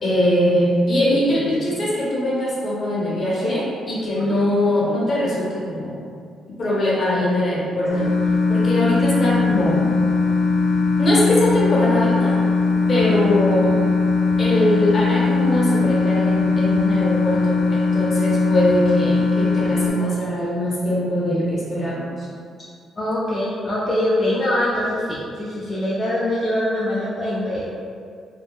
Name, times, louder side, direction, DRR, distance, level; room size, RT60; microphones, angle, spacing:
voice 1, 0.0-5.9 6.6-8.1 8.5-9.8 11.0-12.4 12.9-13.8 14.4-22.3, left 1 dB, 40° left, -6 dB, 0.8 m, -21 dB
sound 1, 7.9-19.9, left 4 dB, 85° left, 0.5 m, -19 dB
voice 2, 23.0-27.7, left 1 dB, 25° left, -9 dB, 0.4 m, -23 dB
2.6 x 2.1 x 2.2 m, 2.2 s
cardioid pair, 90°, 0 cm